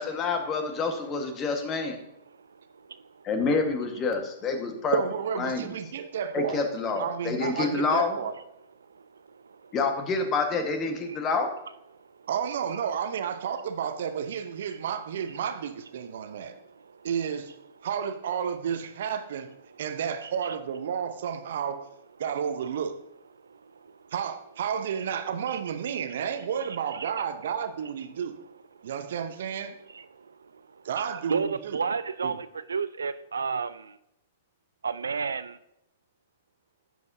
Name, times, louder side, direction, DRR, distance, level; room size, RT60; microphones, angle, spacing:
voice 1, 0.0-2.0 3.2-5.0 5.4-5.7 6.3-8.2 9.7-11.5, left 4 dB, 30° left, 5 dB, 1.5 m, -27 dB
voice 2, 2.3-3.2 8.9-9.8 11.1-11.2 11.9-12.3 16.3-17.1 20.2-20.6 23.4-24.0 25.5-25.6 26.9-27.1 27.4-27.5 28.8-28.9 29.9-34.0 34.8-35.6, right 5 dB, 80° right, 16 dB, 0.3 m, -34 dB
voice 3, 4.9-6.6 6.9-8.4 12.3-16.6 17.0-17.5 17.8-19.5 19.8-21.9 22.2-23.0 24.1-28.4 28.8-29.8 30.8-31.8 32.2-32.4, right 7 dB, 65° right, 10 dB, 0.8 m, -31 dB
10.5 x 7.6 x 2.7 m, 0.82 s
figure-of-eight pair, 110°, 0 cm